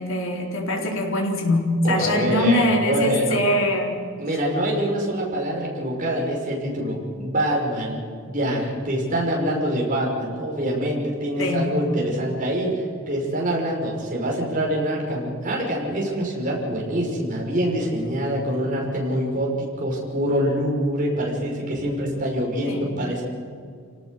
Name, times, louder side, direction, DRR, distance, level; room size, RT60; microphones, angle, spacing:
voice 1, 0.0-4.0 11.4-11.8 22.7-22.9, left 1 dB, 60° left, 1 dB, 4.2 m, -23 dB
voice 2, 1.8-3.4 4.2-23.2, equal, 35° right, -2 dB, 5.8 m, -25 dB
28.0 x 18.5 x 6.6 m, 2.4 s
head